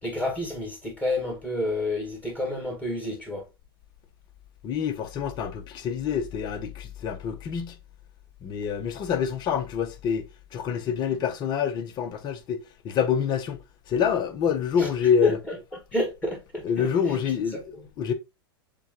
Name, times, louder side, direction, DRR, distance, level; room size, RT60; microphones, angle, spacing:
voice 1, 0.0-3.4 14.8-14.9 15.2-15.5 15.9-17.2 17.5-17.8, left 2 dB, 10° left, 1.7 m, -29 dB
voice 2, 4.6-7.8 8.4-10.3 10.5-13.6 13.9-15.4 16.6-18.1, left 7 dB, 35° left, 0.8 m, -27 dB
6.9 x 2.3 x 2.9 m
hypercardioid pair, 105°, 13 cm